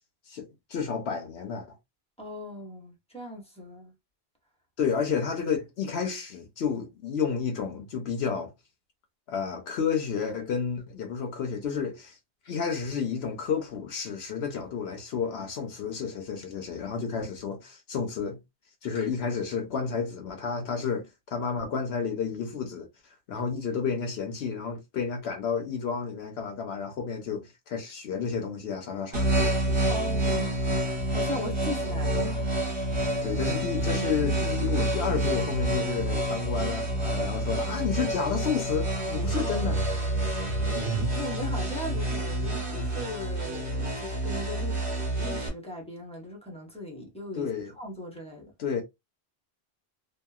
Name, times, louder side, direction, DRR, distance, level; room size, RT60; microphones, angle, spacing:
voice 1, 0.3-1.8 4.8-8.5 9.3-12.2 12.5-18.4 18.8-22.9 23.3-29.5 33.2-39.8 47.3-47.7 48.6-48.8, left 6 dB, 80° left, 0.9 m, -31 dB
voice 2, 2.2-3.9 29.9-30.6 31.1-32.6 33.1-33.3 35.0-35.5 39.3-39.8 41.1-44.8 45.2-47.5 47.8-48.5, left 1 dB, 5° left, 0.8 m, -38 dB
sound 1, 29.1-45.5, right 1 dB, 55° right, 1.3 m, -28 dB
2.8 x 2.3 x 2.3 m
omnidirectional pair, 1.1 m